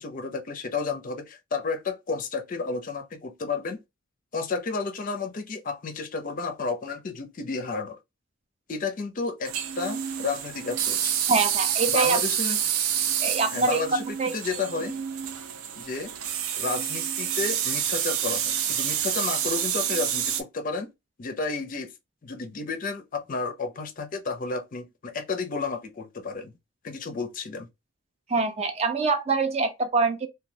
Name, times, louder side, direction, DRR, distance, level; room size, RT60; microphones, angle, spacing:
voice 1, 0.0-3.8 4.3-8.0 8.7-11.1 11.9-12.6 13.5-15.0 15.8-16.1 16.6-20.9 21.2-21.9 22.2-26.5 26.8-27.7, left 4 dB, 40° left, 0.4 m, -32 dB
sound 1, 9.4-20.4, right 9 dB, 90° right, 0.5 m, -28 dB
voice 2, 11.3-12.2 13.2-13.8 14.2-14.4 28.3-30.3, right 4 dB, 30° right, 0.4 m, -24 dB
3.0 x 2.2 x 2.6 m
head